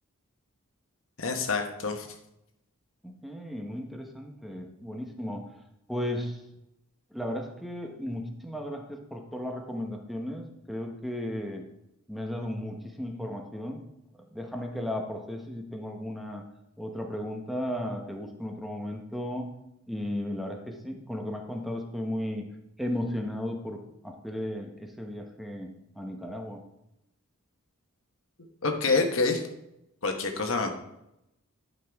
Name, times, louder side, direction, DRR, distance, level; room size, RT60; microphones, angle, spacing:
voice 1, 1.2-2.1 28.6-29.4 30.0-30.7, left 3 dB, 65° left, 4 dB, 1.1 m, -27 dB
voice 2, 3.0-5.5 5.9-6.4 7.1-11.7 12.1-13.8 14.1-16.4 16.8-19.5 19.9-22.5 22.8-26.6, left 1 dB, ahead, 2 dB, 0.9 m, -35 dB
11.0 x 5.6 x 3.5 m, 0.86 s
head